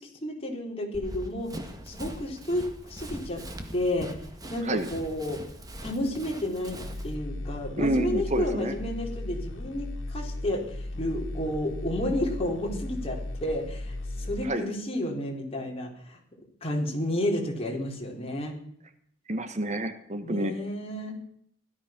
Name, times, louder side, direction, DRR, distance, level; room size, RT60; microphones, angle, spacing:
voice 1, 0.0-3.4 3.7-4.2 4.5-5.4 5.8-16.2 16.6-18.5 20.2-21.2, left 1 dB, 30° left, 0 dB, 4.1 m, -31 dB
Run, 0.9-7.1, right 1 dB, 20° right, 1.8 m, -41 dB
sound 1, 6.7-14.5, left 1 dB, 80° left, 2.1 m, -36 dB
voice 2, 7.8-8.7 14.4-14.6 19.3-20.5, right 1 dB, 40° right, 9 dB, 1.2 m, -28 dB
17.0 x 13.0 x 6.0 m, 0.68 s
head